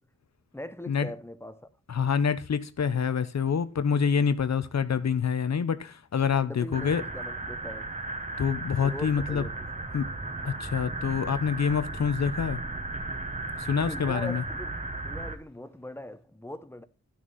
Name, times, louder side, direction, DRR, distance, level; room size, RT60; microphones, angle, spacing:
voice 1, 0.5-1.7 6.3-7.9 8.8-9.5 13.8-16.8, left 1 dB, 10° left, 0.7 m, -41 dB
voice 2, 1.9-7.0 8.4-9.5 9.9-10.1 10.4-12.6 13.7-14.4, left 6 dB, 65° left, 0.7 m, -26 dB
sound 1, 6.7-15.3, right 2 dB, 25° right, 1.2 m, -35 dB
12.5 x 6.2 x 4.1 m
wide cardioid pair, 120°, 30 cm